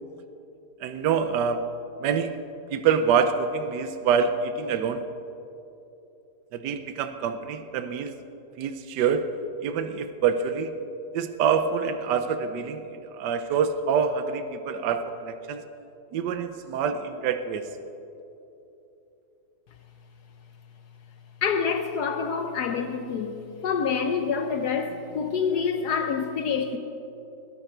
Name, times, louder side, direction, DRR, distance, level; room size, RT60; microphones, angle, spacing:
voice 1, 0.8-1.6 2.0-2.4 2.7-5.0 6.5-8.1 8.6-9.3 9.6-10.7 11.1-15.6 16.1-17.6, right 6 dB, 75° right, 9 dB, 1.3 m, -26 dB
voice 2, 21.4-23.4 23.6-26.8, left 6 dB, 65° left, 6 dB, 1.3 m, -27 dB
21.0 x 13.0 x 4.4 m, 2.9 s
omnidirectional pair, 1.9 m